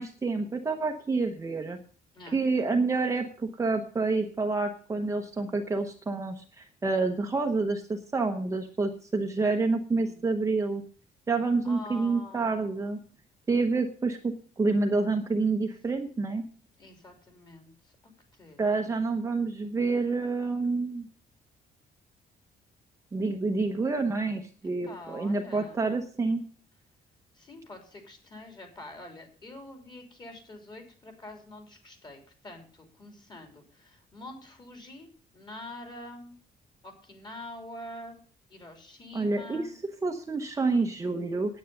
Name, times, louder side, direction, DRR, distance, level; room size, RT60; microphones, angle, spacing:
voice 1, 0.0-1.8 2.3-10.8 11.3-13.0 13.5-16.4 18.6-21.1 23.1-26.4 39.1-39.7 40.0-41.6, right 3 dB, 20° right, 3 dB, 0.9 m, -28 dB
voice 2, 2.1-2.5 10.0-10.2 11.6-13.2 16.8-17.9 18.3-18.9 24.8-25.9 27.3-36.3 36.8-38.2 38.5-39.7, left 1 dB, 25° left, 3 dB, 3.3 m, -46 dB
9.4 x 9.2 x 6.6 m, 0.42 s
cardioid pair, 170°, 17 cm